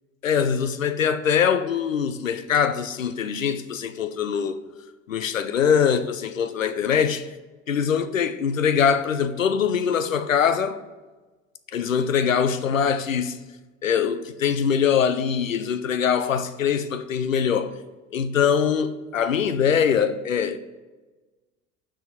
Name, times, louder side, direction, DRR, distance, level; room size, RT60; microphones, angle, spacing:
voice 1, 0.2-4.6 5.1-7.3 7.7-10.8 11.7-13.4 13.8-17.7 18.1-20.6, left 7 dB, 90° left, 0.5 m, -23 dB
6.3 x 5.0 x 5.5 m
figure-of-eight pair, 70°, 38 cm